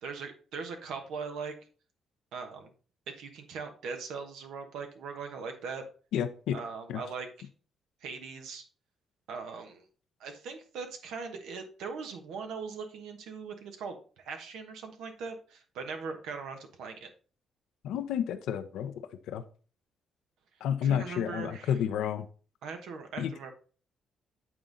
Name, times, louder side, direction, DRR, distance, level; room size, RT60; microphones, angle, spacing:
voice 1, 0.0-1.5 2.3-2.7 3.1-5.8 6.5-7.5 8.0-8.6 9.3-9.8 10.2-17.1 20.8-21.7 22.6-23.5, right 5 dB, 85° right, 5 dB, 1.1 m, -40 dB
voice 2, 6.1-6.6 6.9-7.0 17.8-18.9 19.3-19.4 20.6-22.3 23.2-23.3, left 9 dB, 85° left, 9 dB, 0.7 m, -30 dB
8.6 x 3.8 x 3.9 m, 0.39 s
cardioid pair, 90°, 0 cm